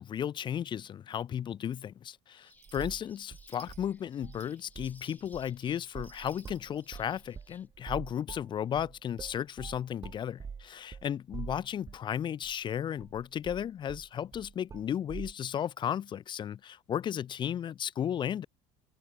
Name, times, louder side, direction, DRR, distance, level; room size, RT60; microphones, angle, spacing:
voice 1, 0.0-18.5, left 9 dB, 30° left, 0.8 m, -34 dB
sound 1, 2.3-7.7, left 3 dB, 10° left, 6.4 m, -62 dB
sound 2, 2.5-6.9, right 13 dB, 50° right, 6.7 m, -59 dB
sound 3, 2.7-3.0 3.3-4.4 4.7-5.0 5.3-12.1 12.4-12.5 13.0-15.3, right 6 dB, 20° right, 1.4 m, -45 dB
cardioid pair, 130°, 15 cm